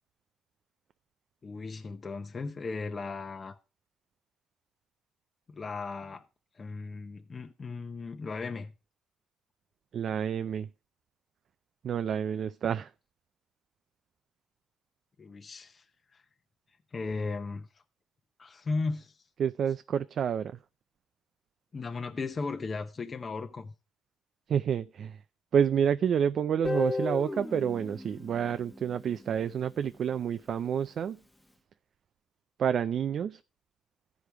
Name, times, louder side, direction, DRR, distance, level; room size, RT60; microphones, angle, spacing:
voice 1, 1.4-3.5 5.5-6.2 6.5-8.7 15.2-15.8 16.1-16.2 16.9-17.8 18.4-19.2 21.7-23.7, left 4 dB, 35° left, 0.8 m, -36 dB
voice 2, 9.9-10.7 11.8-12.9 19.4-20.6 24.5-25.2 25.5-31.2 32.6-33.4, right 8 dB, 60° right, 0.4 m, -29 dB
Guitar, 26.6-29.6, left 2 dB, 10° left, 1.0 m, -35 dB
14.5 x 5.0 x 4.6 m
cardioid pair, 90°, 0 cm